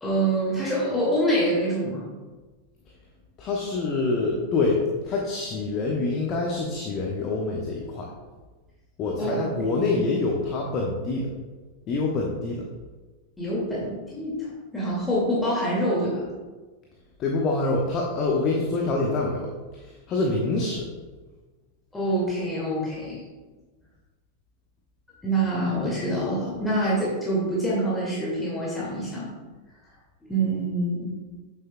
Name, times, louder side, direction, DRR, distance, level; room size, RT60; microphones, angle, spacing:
voice 1, 0.0-2.0 9.2-9.4 9.8-10.0 13.4-16.3 21.9-23.2 25.2-29.3 30.3-31.1, right 1 dB, 10° left, -6 dB, 2.0 m, -26 dB
voice 2, 3.4-8.1 9.0-11.3 11.9-12.7 17.2-19.5 19.8-20.9, left 3 dB, 35° left, -1 dB, 1.0 m, -26 dB
8.7 x 7.1 x 2.2 m, 1.3 s
figure-of-eight pair, 90°, 0 cm